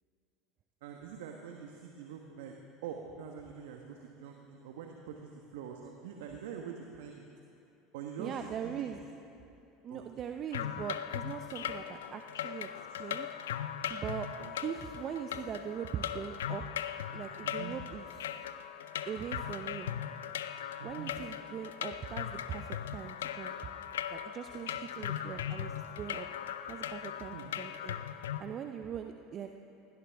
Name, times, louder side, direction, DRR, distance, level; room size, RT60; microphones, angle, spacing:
voice 1, 0.8-2.5 2.8-7.3 7.9-8.9 9.9-10.2 13.1-13.3 14.4-14.6 17.4-17.7 20.8-21.1 25.3-25.5 27.3-27.5, right 7 dB, 70° right, 2 dB, 1.2 m, -45 dB
voice 2, 8.2-9.0 9.8-12.7 13.0-13.3 13.9-14.3 14.6-16.6 17.1-18.3 19.1-19.9 20.8-23.6 24.1-26.3 26.7-28.0 28.4-29.5, right 8 dB, 45° right, 6 dB, 0.7 m, -41 dB
sound 1, 10.5-28.4, left 10 dB, 80° left, 0.5 m, -39 dB
20.0 x 17.0 x 3.5 m, 2.7 s
hypercardioid pair, 75°, 0 cm